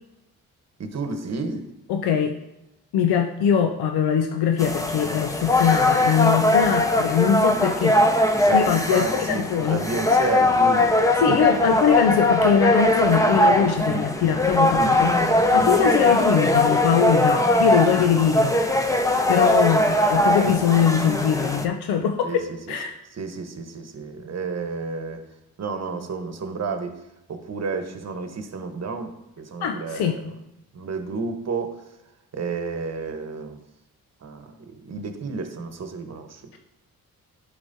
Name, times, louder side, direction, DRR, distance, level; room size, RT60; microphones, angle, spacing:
voice 1, 0.8-1.7 8.4-11.4 13.8-14.1 14.7-15.0 15.5-15.9 22.2-22.8 23.2-25.2 25.6-26.9 27.3-30.3 30.7-31.8 32.3-33.6 34.2-36.4, right 4 dB, 40° right, 6 dB, 1.1 m, -31 dB
voice 2, 1.9-2.4 2.9-8.0 8.5-9.8 11.2-15.1 15.5-18.6 19.3-22.9 29.6-30.1 36.5-36.6, left 8 dB, 75° left, 5 dB, 0.6 m, -22 dB
sound 1, 4.6-21.6, left 1 dB, 10° left, 0.8 m, -20 dB
11.0 x 4.8 x 2.7 m, 0.91 s
supercardioid pair, 50°, 38 cm